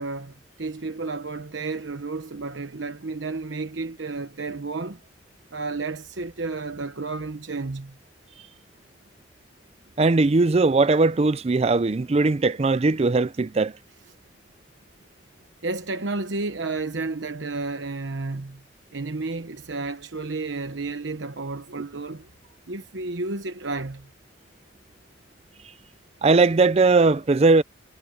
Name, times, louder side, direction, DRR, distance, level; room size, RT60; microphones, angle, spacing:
voice 1, 0.0-5.0 5.5-8.0 15.6-18.6 18.9-22.3 22.7-24.1, right 3 dB, 80° right, 1.1 m, -31 dB
voice 2, 10.0-13.7 26.2-27.6, right 3 dB, 35° right, 0.4 m, -19 dB
head